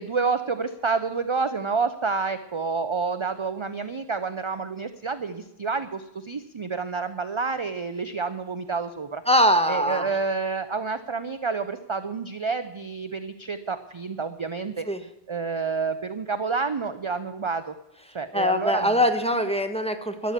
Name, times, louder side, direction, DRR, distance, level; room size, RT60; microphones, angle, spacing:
voice 1, 0.0-9.2 9.7-14.9 15.3-17.7 18.1-19.0, right 4 dB, 35° right, 10 dB, 0.6 m, -29 dB
voice 2, 9.3-10.1 14.9-15.0 18.3-20.3, equal, 5° left, 6 dB, 1.2 m, -22 dB
12.5 x 10.5 x 7.4 m, 0.91 s
omnidirectional pair, 1.1 m